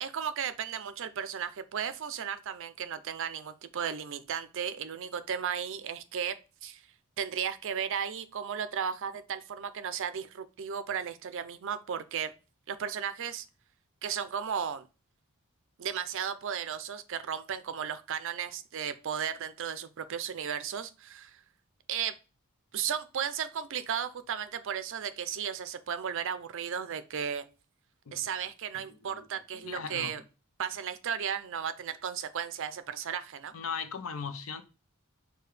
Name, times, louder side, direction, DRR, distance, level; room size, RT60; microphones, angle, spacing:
voice 1, 0.0-6.8 7.2-12.3 12.7-13.4 14.0-14.9 15.8-21.4 21.9-22.1 22.7-27.4 28.1-30.2 30.6-33.5, right 8 dB, 60° right, 0.5 m, -35 dB
voice 2, 29.6-30.1 33.5-34.6, left 6 dB, 65° left, 0.6 m, -38 dB
6.6 x 2.3 x 3.2 m
head